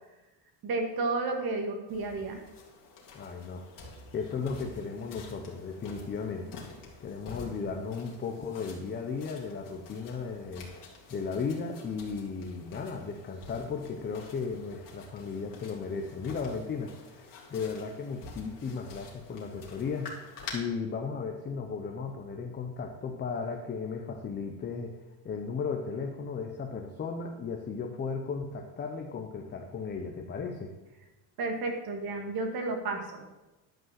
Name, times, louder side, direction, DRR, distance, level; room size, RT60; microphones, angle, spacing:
voice 1, 0.6-2.4 31.4-33.3, right 3 dB, 50° right, 4 dB, 1.9 m, -32 dB
sound 1, 1.9-20.5, left 4 dB, 45° left, 2.5 m, -49 dB
voice 2, 3.1-3.7 4.1-6.6 7.0-10.7 11.1-20.2 20.5-25.0 25.2-30.7, left 5 dB, 20° left, 3 dB, 0.7 m, -35 dB
11.5 x 5.2 x 7.6 m, 1.1 s
cardioid pair, 160°, 48 cm